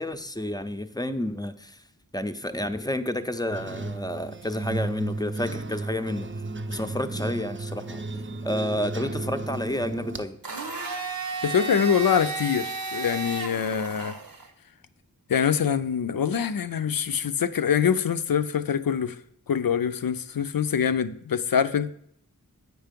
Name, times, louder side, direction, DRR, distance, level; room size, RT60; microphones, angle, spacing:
voice 1, 0.0-1.8 2.1-6.3 6.7-8.0 8.4-10.4, left 1 dB, 10° left, 0.5 m, -30 dB
sound 1, 3.5-10.3, right 2 dB, 35° right, 0.5 m, -33 dB
Domestic sounds home sounds, 10.4-14.5, right 4 dB, 85° right, 0.9 m, -33 dB
voice 2, 11.4-14.2 15.3-19.2 19.5-21.9, left 7 dB, 80° left, 0.5 m, -24 dB
8.1 x 4.6 x 5.1 m
wide cardioid pair, 45°, 34 cm